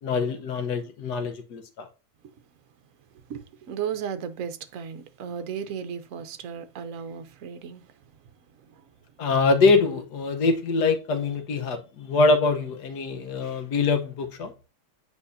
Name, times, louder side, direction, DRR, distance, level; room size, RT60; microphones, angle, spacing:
voice 1, 0.0-1.9 9.2-14.5, left 3 dB, 80° left, 1.6 m, -24 dB
voice 2, 3.1-8.2 8.6-8.9, right 7 dB, 60° right, 1.1 m, -35 dB
8.2 x 4.9 x 2.7 m
omnidirectional pair, 1.7 m